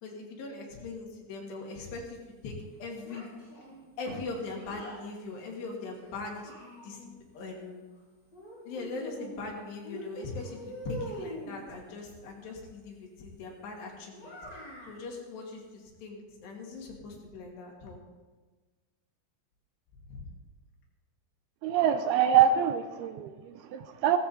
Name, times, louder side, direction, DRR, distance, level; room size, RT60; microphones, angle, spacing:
voice 1, 0.0-2.2 2.4-3.3 4.0-7.8 8.6-18.0 20.1-20.2, left 3 dB, 75° left, -1 dB, 4.6 m, -41 dB
Child speech kid speaking, 3.0-5.0 5.9-7.2 8.3-9.5 9.8-11.6 14.1-15.0, equal, 25° left, 4.0 m, -43 dB
voice 2, 21.6-24.2, right 9 dB, 80° right, 8 dB, 2.4 m, -25 dB
17.5 x 14.0 x 4.3 m, 1.3 s
omnidirectional pair, 4.9 m